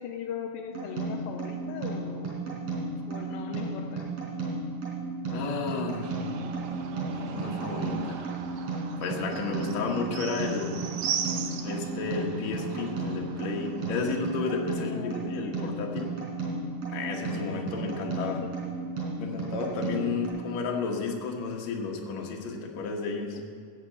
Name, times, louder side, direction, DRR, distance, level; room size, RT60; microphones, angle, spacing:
voice 1, 0.0-2.7 3.1-4.2 14.8-15.7 18.3-18.5 23.3-23.4, left 8 dB, 80° left, 4 dB, 2.4 m, -39 dB
sound 1, 0.7-20.3, right 3 dB, 40° right, 5.5 m, -34 dB
voice 2, 5.3-6.1 7.1-8.3 9.0-10.9 11.6-16.1 16.9-18.4 19.2-23.4, left 4 dB, 55° left, 0 dB, 2.3 m, -32 dB
sound 2, 6.0-14.2, right 7 dB, 75° right, 2.5 m, -38 dB
15.5 x 6.5 x 8.7 m, 2.2 s
omnidirectional pair, 4.3 m